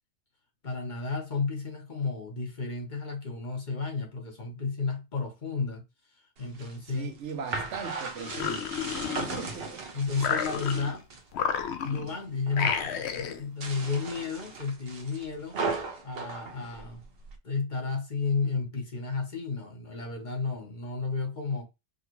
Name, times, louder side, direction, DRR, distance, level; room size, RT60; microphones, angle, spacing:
voice 1, 0.6-5.8 6.4-7.1 9.9-11.1 11.8-15.6 16.0-17.0 17.4-21.6, left 4 dB, 45° left, 1.1 m, -32 dB
sound 1, 6.4-11.3 11.6-12.2 12.5-13.0 13.5-17.4, right 4 dB, 60° right, 0.9 m, -37 dB
voice 2, 6.9-8.9 9.4-9.8, right 6 dB, 85° right, 1.1 m, -39 dB
sound 2, 8.2-9.7 10.2-11.0 11.3-12.1 12.5-13.4, left 8 dB, 75° left, 0.9 m, -31 dB
4.9 x 2.4 x 3.0 m
omnidirectional pair, 1.2 m